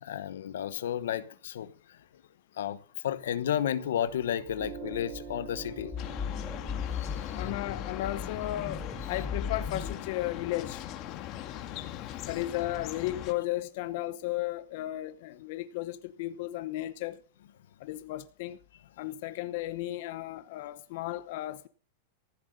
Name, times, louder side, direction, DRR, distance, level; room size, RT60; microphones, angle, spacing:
voice 1, 0.0-2.0 2.5-6.0 6.9-7.4 11.1-12.0, left 10 dB, 85° left, 1.1 m, -33 dB
Piano, 3.6-10.6, right 12 dB, 45° right, 2.7 m, -48 dB
sound 1, 4.5-9.9, left 6 dB, 10° left, 3.2 m, -38 dB
sound 2, 6.0-13.3, left 12 dB, 40° left, 1.9 m, -40 dB
voice 2, 7.3-10.8 12.3-17.2 17.8-18.6 19.0-21.7, left 15 dB, 60° left, 0.8 m, -34 dB
15.0 x 7.7 x 6.6 m
supercardioid pair, 140°, 0 cm